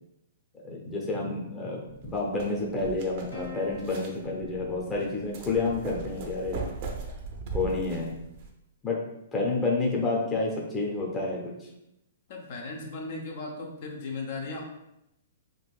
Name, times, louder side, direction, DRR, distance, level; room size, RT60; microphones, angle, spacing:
voice 1, 0.6-6.6 7.5-8.1 8.8-9.0 9.3-11.4, left 3 dB, 15° left, -3 dB, 0.7 m, -29 dB
sound 1, 1.9-8.5, right 3 dB, 45° right, 0.6 m, -39 dB
Plucked string instrument, 3.3-6.1, left 4 dB, 75° left, 1.0 m, -47 dB
voice 2, 12.3-14.7, left 3 dB, 55° left, 0 dB, 0.7 m, -36 dB
3.8 x 2.5 x 2.4 m, 0.85 s
hypercardioid pair, 130°, 0 cm